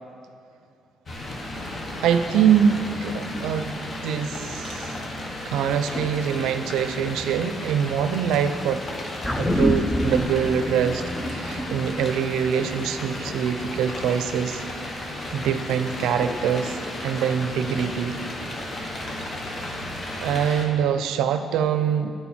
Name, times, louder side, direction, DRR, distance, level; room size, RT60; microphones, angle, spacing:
sound 1, 1.1-20.7, left 1 dB, 40° left, 1.2 m, -34 dB
voice 1, 2.0-5.0 5.4-8.9 9.4-14.6 15.3-18.2 20.1-22.1, right 8 dB, 90° right, 9 dB, 0.4 m, -24 dB
sound 2, 9.2-13.8 14.2-14.3, equal, 10° left, 0.6 m, -27 dB
10.5 x 4.3 x 4.3 m, 2.4 s
cardioid pair, 90°, 0 cm